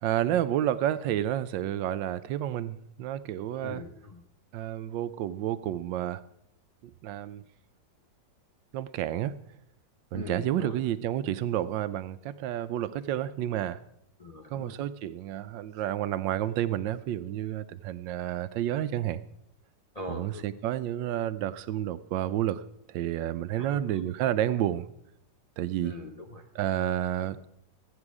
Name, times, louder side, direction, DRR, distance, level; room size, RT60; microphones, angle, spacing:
voice 1, 0.0-3.8 4.5-6.2 7.0-7.4 8.7-9.3 10.1-13.8 14.5-19.2 20.1-22.6 22.9-24.9 25.6-25.9 26.5-27.4, right 12 dB, 80° right, 14 dB, 1.3 m, -30 dB
voice 2, 3.6-4.2 10.1-10.8 14.2-14.8 19.9-20.4 23.6-24.0 25.8-26.4, left 2 dB, 35° left, 1 dB, 0.6 m, -41 dB
14.5 x 8.9 x 4.8 m, 0.76 s
omnidirectional pair, 2.0 m